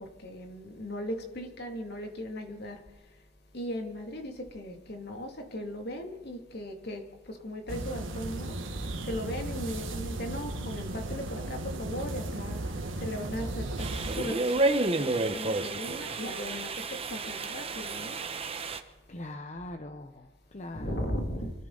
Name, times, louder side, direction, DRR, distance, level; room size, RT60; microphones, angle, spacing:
voice 1, 0.0-2.8 3.5-8.6 9.0-12.6 13.0-13.9 14.1-16.7 17.1-18.2 20.7-21.5, equal, 55° left, 2.5 m, -37 dB
sound 1, 7.7-14.2, right 2 dB, 80° right, 1.8 m, -36 dB
sound 2, 13.8-18.8, right 2 dB, 30° right, 1.1 m, -31 dB
voice 2, 19.1-21.2, left 1 dB, 35° left, 0.9 m, -42 dB
24.5 x 13.5 x 4.0 m
head